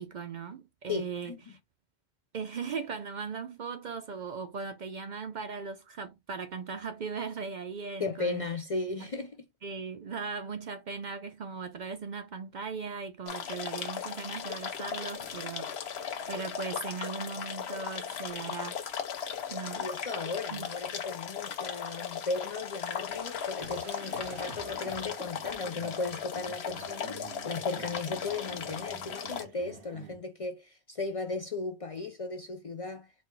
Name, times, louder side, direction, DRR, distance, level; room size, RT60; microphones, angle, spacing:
voice 1, 0.0-1.6 2.3-8.4 9.0-9.1 9.6-15.9 16.3-18.8 19.5-19.9 20.5-20.7, right 5 dB, 55° right, 0.6 m, -38 dB
voice 2, 0.9-1.4 8.0-9.5 16.2-16.3 19.8-33.1, left 3 dB, 45° left, 0.5 m, -36 dB
sound 1, 13.3-29.4, left 8 dB, 75° left, 1.0 m, -37 dB
sound 2, 23.6-30.2, right 6 dB, 85° right, 1.0 m, -49 dB
4.2 x 2.3 x 4.4 m
omnidirectional pair, 1.1 m